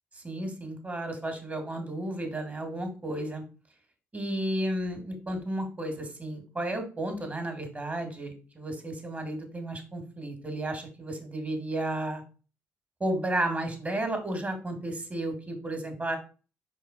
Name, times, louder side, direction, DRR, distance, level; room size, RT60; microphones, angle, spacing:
voice 1, 0.1-3.4 4.1-12.2 13.0-16.2, right 1 dB, 30° right, 5 dB, 3.0 m, -33 dB
5.3 x 4.4 x 4.5 m, 0.34 s
supercardioid pair, 55°, 6 cm